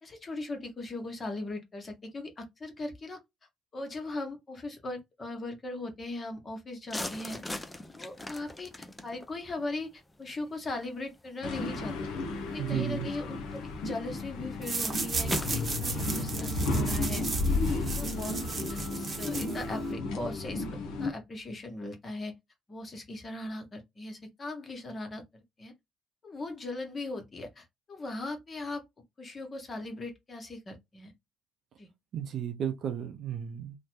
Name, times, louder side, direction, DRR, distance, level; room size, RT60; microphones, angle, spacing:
voice 1, 0.0-3.2 3.7-7.4 8.0-11.9 12.5-17.2 17.7-20.7 21.0-22.3 22.7-25.7 26.2-28.8 29.2-31.1 31.8-31.9, left 2 dB, 35° left, 1.0 m, -39 dB
sound 1, 6.9-19.3, left 1 dB, 15° left, 0.6 m, -44 dB
sound 2, 11.4-21.1, left 2 dB, 65° left, 0.6 m, -33 dB
voice 2, 12.6-13.1 32.1-33.8, right 9 dB, 55° right, 0.6 m, -33 dB
sound 3, 14.6-19.9, right 4 dB, 35° right, 0.9 m, -36 dB
3.0 x 2.1 x 3.0 m
figure-of-eight pair, 45°, 0 cm